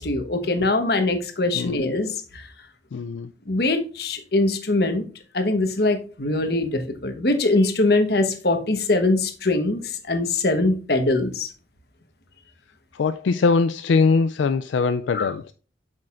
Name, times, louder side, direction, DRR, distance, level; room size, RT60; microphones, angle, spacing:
voice 1, 0.0-2.4 3.5-5.0 5.3-11.5 15.1-15.3, left 2 dB, 55° left, 1.2 m, -22 dB
voice 2, 2.9-3.3 12.9-15.5, left 4 dB, 80° left, 0.4 m, -21 dB
8.4 x 6.4 x 2.5 m
head